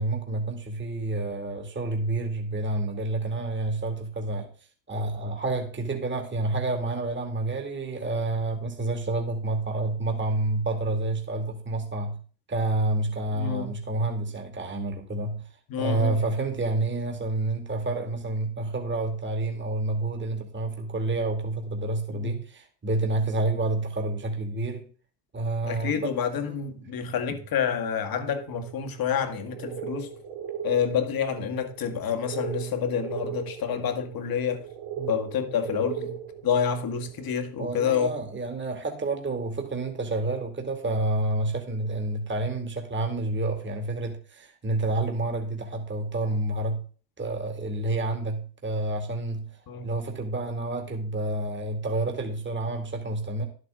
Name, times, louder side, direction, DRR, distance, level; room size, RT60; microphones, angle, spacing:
voice 1, 0.0-4.5 4.9-12.2 12.5-15.5 15.8-24.9 25.3-26.1 26.5-26.6 35.0-35.1 37.6-46.8 47.2-49.5 49.8-53.5, right 2 dB, 25° right, 2.4 m, -29 dB
voice 2, 13.3-13.8 15.7-16.2 22.1-22.3 25.6-30.1 30.6-34.6 35.1-38.1 49.7-49.9, left 7 dB, 45° left, 1.9 m, -28 dB
sound 1, 28.3-37.5, right 8 dB, 65° right, 2.1 m, -38 dB
11.0 x 8.1 x 3.7 m
hypercardioid pair, 80°, 49 cm